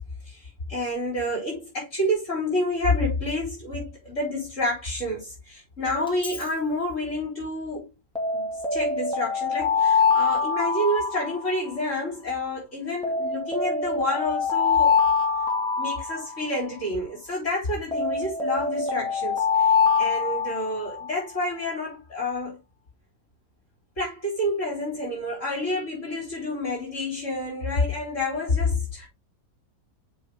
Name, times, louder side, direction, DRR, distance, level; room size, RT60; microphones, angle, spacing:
voice 1, 0.3-7.9 8.3-15.0 15.8-22.6 24.0-29.1, left 1 dB, 50° left, 5.2 m, -29 dB
Alarm, 6.1-6.4 8.2-11.9 13.0-16.8 17.9-21.1, left 5 dB, 5° left, 2.3 m, -24 dB
8.3 x 5.3 x 3.6 m
omnidirectional pair, 1.7 m